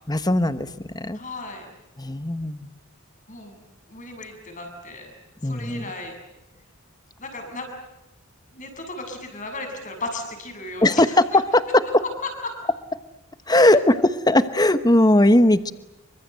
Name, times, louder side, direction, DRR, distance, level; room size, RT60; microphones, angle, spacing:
voice 1, 0.1-0.7 0.9-1.2 2.0-2.7 5.4-5.9 10.8-12.0 13.5-15.7, left 1 dB, 20° left, 12 dB, 1.2 m, -18 dB
voice 2, 1.1-1.7 3.3-3.6 3.9-5.1 5.4-6.2 7.2-7.7 8.5-11.0 12.2-12.6 13.6-13.8, left 2 dB, 40° left, 5 dB, 7.4 m, -35 dB
28.0 x 25.0 x 8.1 m, 0.93 s
head